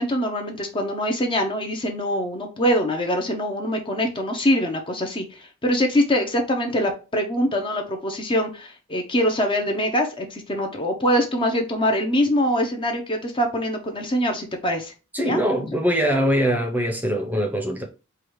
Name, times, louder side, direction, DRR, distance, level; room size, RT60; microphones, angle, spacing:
voice 1, 0.0-5.2 5.6-14.9 15.2-15.4, equal, 25° left, 0.7 m, -23 dB
voice 2, 15.1-17.8, equal, 10° right, 0.7 m, -22 dB
4.7 x 2.4 x 4.6 m
head